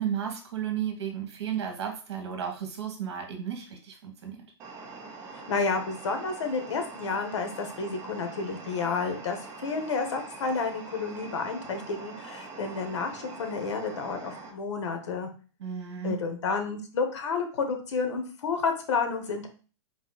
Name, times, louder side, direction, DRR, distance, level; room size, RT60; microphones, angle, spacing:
voice 1, 0.0-4.4 15.6-16.2, right 9 dB, 65° right, 4 dB, 1.2 m, -33 dB
sound 1, 4.6-14.5, right 4 dB, 20° right, 0.8 m, -44 dB
voice 2, 5.3-15.3 16.0-19.5, left 4 dB, 75° left, 6 dB, 1.0 m, -30 dB
4.0 x 2.6 x 3.8 m, 0.38 s
hypercardioid pair, 165°, 15 cm